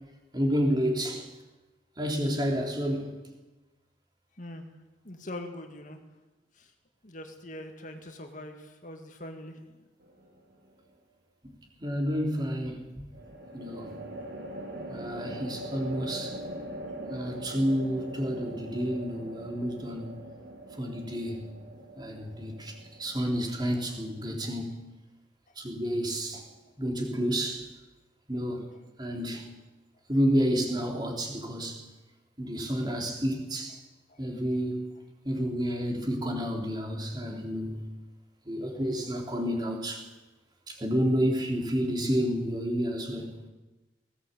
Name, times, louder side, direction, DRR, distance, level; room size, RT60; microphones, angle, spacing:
voice 1, 0.3-1.3 2.0-3.2 11.8-13.1 13.5-14.0 14.9-16.4 17.1-20.2 20.7-21.5 22.0-24.8 25.6-26.4 26.8-27.7 28.3-28.7 29.0-29.5 30.1-31.8 32.4-33.8 34.2-34.9 35.3-37.9 38.5-40.1 40.7-43.3, equal, 20° right, 2 dB, 3.7 m, -30 dB
voice 2, 5.0-6.0 6.6-6.7 7.0-9.8 16.9-17.0 34.1-34.2, left 1 dB, 40° left, 5 dB, 2.1 m, -42 dB
sound 1, 10.0-10.6 13.1-24.5, right 1 dB, 60° right, 3.6 m, -42 dB
19.5 x 17.0 x 8.3 m, 1.1 s
head